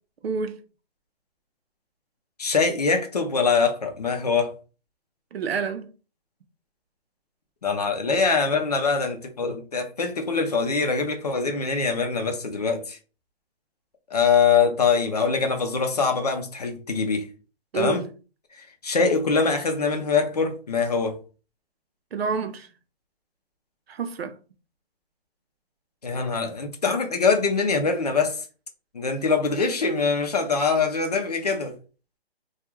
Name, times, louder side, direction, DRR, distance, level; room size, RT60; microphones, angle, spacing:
voice 1, 0.2-0.6 5.3-5.9 17.7-18.0 22.1-22.7 23.9-24.4, right 5 dB, 75° right, 0.6 m, -28 dB
voice 2, 2.4-4.5 7.6-13.0 14.1-17.3 17.7-18.1 18.5-21.2 26.0-28.4 28.9-31.8, left 5 dB, 40° left, 0.5 m, -23 dB
2.3 x 2.3 x 3.0 m
hypercardioid pair, 170°, 31 cm